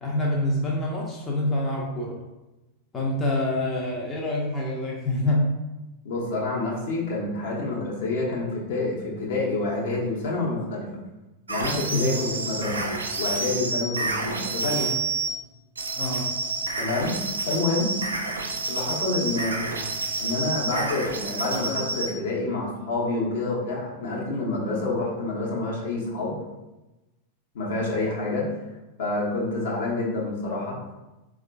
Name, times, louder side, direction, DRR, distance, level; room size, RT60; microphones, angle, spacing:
voice 1, 0.0-2.2 2.9-5.5 11.9-12.2 16.0-16.3, left 1 dB, 20° left, -3 dB, 0.5 m, -26 dB
voice 2, 6.0-10.9 11.5-12.9 13.2-14.9 16.8-17.1 17.5-17.9 18.7-19.8 20.2-26.3 27.5-28.5 29.0-30.8, left 2 dB, 60° left, -3 dB, 0.8 m, -28 dB
sound 1, 11.5-15.3 15.8-22.1, right 3 dB, 75° right, 0.4 m, -29 dB
4.3 x 2.3 x 2.3 m, 1.0 s
figure-of-eight pair, 90°, 0 cm